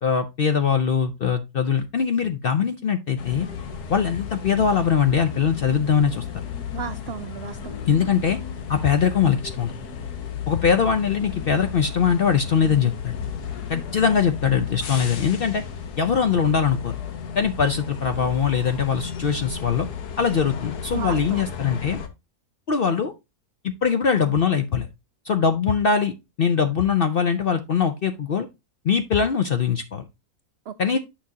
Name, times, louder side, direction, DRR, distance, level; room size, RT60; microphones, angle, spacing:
voice 1, 0.0-3.5 3.9-6.2 7.9-8.4 8.7-9.7 10.5-13.1 13.7-15.6 16.0-17.0 17.4-19.9 20.2-22.0 22.7-23.1 23.6-24.9 25.3-26.1 26.4-28.5 28.8-30.0 30.8-31.0, left 6 dB, 60° left, 0.6 m, -22 dB
sound 1, 3.2-22.1, left 7 dB, 90° left, 1.6 m, -34 dB
voice 2, 6.7-7.8 20.9-21.4 30.7-31.0, right 8 dB, 75° right, 0.5 m, -34 dB
8.7 x 5.8 x 2.7 m
omnidirectional pair, 1.6 m